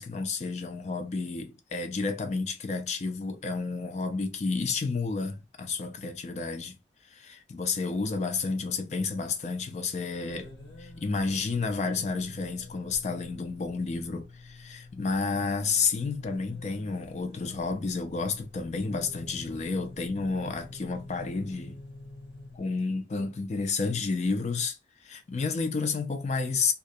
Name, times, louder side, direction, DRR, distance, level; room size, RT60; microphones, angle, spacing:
voice 1, 0.0-6.8 7.0-10.5 10.8-21.8 22.5-26.7, left 4 dB, 40° left, 0.4 m, -31 dB
sound 1, 10.3-22.6, left 2 dB, 65° left, 0.9 m, -47 dB
2.3 x 2.0 x 2.6 m
head